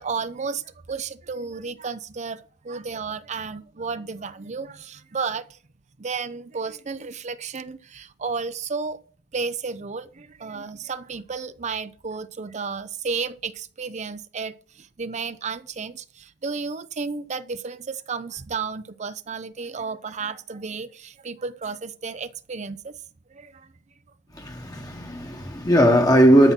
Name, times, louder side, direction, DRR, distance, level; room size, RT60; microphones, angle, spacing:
voice 1, 0.0-5.6 6.0-9.0 9.3-22.9 23.3-23.7, right 5 dB, 40° right, 0.6 m, -32 dB
voice 2, 24.3-26.5, equal, 20° left, 1.2 m, -18 dB
12.5 x 5.7 x 5.9 m
head